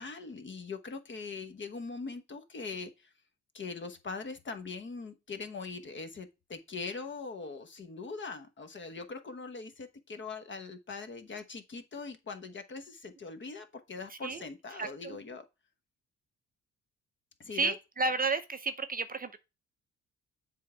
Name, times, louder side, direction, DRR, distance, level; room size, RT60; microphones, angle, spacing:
voice 1, 0.0-3.1 3.5-15.4 17.4-17.7, left 4 dB, 40° left, 1.2 m, -41 dB
voice 2, 14.8-15.2 17.5-19.4, right 3 dB, 30° right, 0.6 m, -32 dB
7.4 x 3.7 x 4.4 m
cardioid pair, 90°, 30 cm